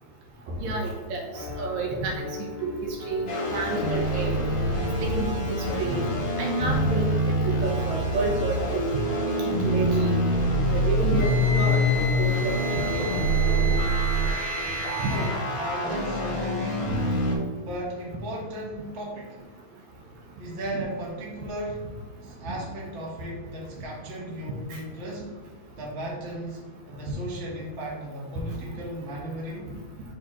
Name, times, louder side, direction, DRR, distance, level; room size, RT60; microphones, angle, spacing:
voice 1, 0.6-2.3 2.6-4.4 5.0-6.1 6.4-8.9 9.6-10.2 10.7-11.8 12.2-13.1 15.0-15.2 16.9-17.0 22.5-22.6, right 3 dB, 75° right, 1 dB, 2.1 m, -29 dB
Piano, 1.3-15.0, left 3 dB, 5° left, 0.9 m, -41 dB
sound 1, 3.3-17.4, equal, 50° left, 1.6 m, -25 dB
Wind instrument woodwind instrument, 11.2-15.4, right 3 dB, 35° left, 1.8 m, -34 dB
voice 2, 15.1-17.1 17.5-19.4 20.4-21.9 22.2-25.3 25.8-26.6 26.9-29.7, right 1 dB, 35° right, -4 dB, 1.2 m, -35 dB
6.2 x 3.8 x 4.2 m, 1.3 s
omnidirectional pair, 3.3 m